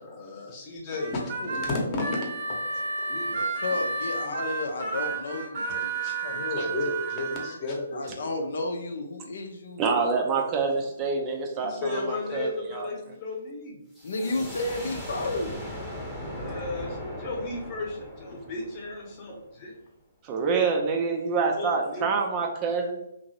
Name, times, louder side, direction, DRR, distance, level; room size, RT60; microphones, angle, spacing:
voice 1, 0.0-3.3 4.2-4.4 5.8-8.3 11.5-13.8 16.2-19.8 21.6-22.2, left 2 dB, 30° left, -1 dB, 0.9 m, -34 dB
Harmonica, 1.0-7.5, right 3 dB, 45° right, 0.8 m, -31 dB
voice 2, 3.3-5.9 6.2-6.7 7.9-9.9 14.0-15.6, left 2 dB, 65° left, 3 dB, 0.5 m, -32 dB
voice 3, 9.8-12.9 20.2-23.0, right 4 dB, 25° right, 2 dB, 0.4 m, -26 dB
sound 1, 13.9-19.5, equal, ahead, 0.8 m, -39 dB
2.9 x 2.6 x 2.7 m, 0.85 s
figure-of-eight pair, 135°, 0 cm